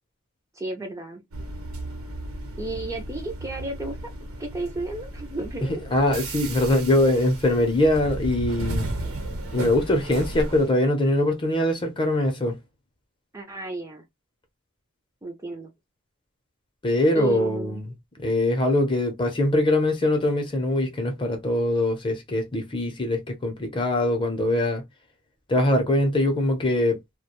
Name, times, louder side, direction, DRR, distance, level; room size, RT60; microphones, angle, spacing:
voice 1, 0.5-1.2 2.6-4.1 4.4-5.8 13.3-14.0 15.2-15.7 17.1-17.8, right 2 dB, 15° right, 0.4 m, -33 dB
sound 1, 1.3-10.7, right 2 dB, 90° right, 0.8 m, -34 dB
voice 2, 5.9-8.9 9.5-12.6 16.8-17.8 18.2-24.8 25.5-27.0, left 1 dB, 25° left, 0.7 m, -22 dB
2.3 x 2.1 x 2.9 m
head